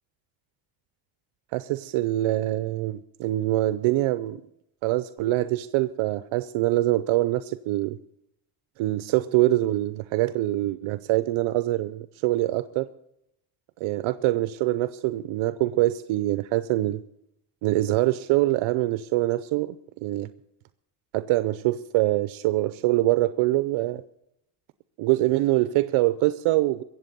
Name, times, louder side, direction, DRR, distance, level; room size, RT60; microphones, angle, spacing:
voice 1, 1.5-4.4 4.8-8.0 8.8-12.9 13.8-17.0 17.6-19.8 20.0-20.3 21.1-24.0 25.0-26.8, right 16 dB, 75° right, 13 dB, 0.8 m, -24 dB
22.5 x 8.0 x 6.8 m, 0.80 s
cardioid pair, 130°, 49 cm